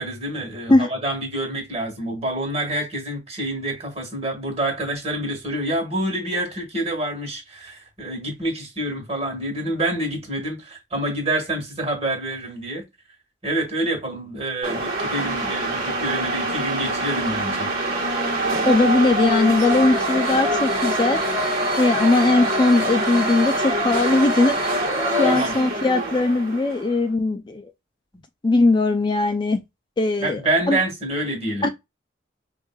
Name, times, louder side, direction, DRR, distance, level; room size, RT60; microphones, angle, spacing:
voice 1, 0.0-12.8 13.4-17.7 25.2-25.6 30.2-31.7, right 1 dB, 35° right, 1.6 m, -27 dB
sound 1, 14.6-26.9, right 1 dB, 50° right, 1.4 m, -24 dB
voice 2, 18.6-24.5 25.2-27.7 28.4-29.6 30.0-30.4 30.7-30.8 31.6-31.7, left 2 dB, 25° left, 0.4 m, -19 dB
5.2 x 2.7 x 2.3 m
head